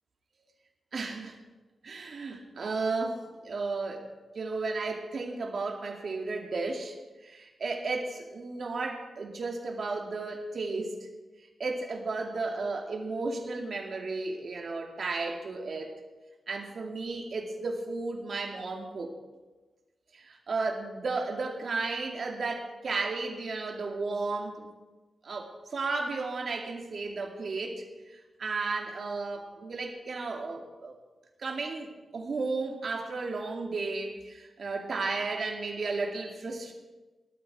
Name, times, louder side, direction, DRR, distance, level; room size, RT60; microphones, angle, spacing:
voice 1, 0.9-1.4 1.8-4.1 4.3-7.0 7.2-11.0 11.6-16.0 16.5-19.1 20.1-24.7 25.2-27.8 28.4-30.9 31.4-36.7, right 3 dB, 50° right, 2 dB, 2.4 m, -34 dB
18.0 x 12.0 x 4.8 m, 1.2 s
wide cardioid pair, 150°, 0 cm